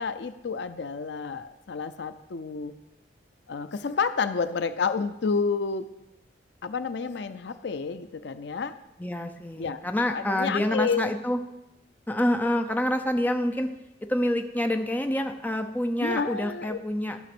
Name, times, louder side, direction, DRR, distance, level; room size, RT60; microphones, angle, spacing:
voice 1, 0.0-2.7 3.5-5.9 6.6-8.8 9.6-9.8 10.1-11.1 16.0-16.8, left 5 dB, 60° left, 12 dB, 0.5 m, -30 dB
voice 2, 9.0-11.4 12.1-13.7 14.1-17.2, left 1 dB, 10° left, 5 dB, 0.6 m, -27 dB
13.0 x 5.9 x 6.1 m, 0.93 s
head